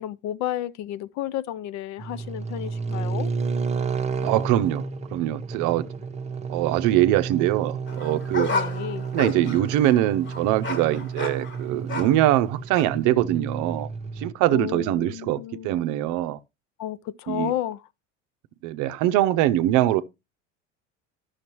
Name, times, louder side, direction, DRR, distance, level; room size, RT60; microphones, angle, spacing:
voice 1, 0.0-3.3 8.5-9.1 14.5-15.9 16.8-17.9, left 12 dB, 50° left, 0.5 m, -32 dB
sound 1, 2.0-14.3, right 5 dB, 15° right, 0.9 m, -31 dB
voice 2, 4.2-4.8 5.1-5.9 6.5-8.5 9.1-13.9 14.2-16.4 17.3-17.5 18.6-20.0, right 14 dB, 55° right, 0.7 m, -23 dB
sound 2, 7.9-12.3 12.7-12.9, left 4 dB, 30° left, 1.5 m, -32 dB
11.5 x 6.4 x 3.0 m
hypercardioid pair, 75°, 37 cm